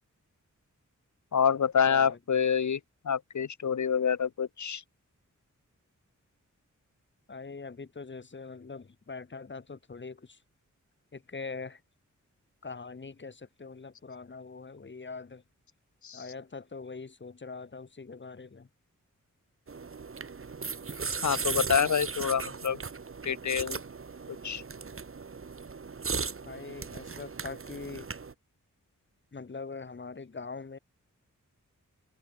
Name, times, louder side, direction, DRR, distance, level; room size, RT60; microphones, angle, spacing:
voice 1, 1.3-2.8 3.0-4.8 16.0-16.2 21.2-22.8 23.2-23.8 24.4-24.6, left 7 dB, 65° left, 1.0 m, -27 dB
voice 2, 1.9-2.2 7.3-10.4 11.1-11.8 12.6-15.4 16.1-18.7 26.4-28.1 29.3-30.8, left 4 dB, 35° left, 1.1 m, -42 dB
sound 1, 19.7-28.3, right 5 dB, 40° right, 1.2 m, -37 dB
cardioid pair, 60°, 32 cm